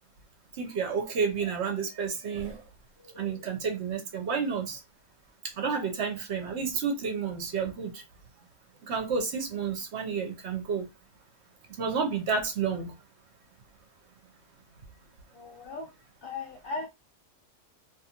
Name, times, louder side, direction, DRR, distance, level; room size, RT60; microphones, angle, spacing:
voice 1, 0.6-2.6 3.1-4.8 5.6-8.0 8.8-10.9 11.8-12.9, right 5 dB, 60° right, 0.8 m, -30 dB
voice 2, 15.3-15.9 16.2-16.9, left 3 dB, 80° left, 0.4 m, -37 dB
2.5 x 2.5 x 2.8 m
omnidirectional pair, 1.6 m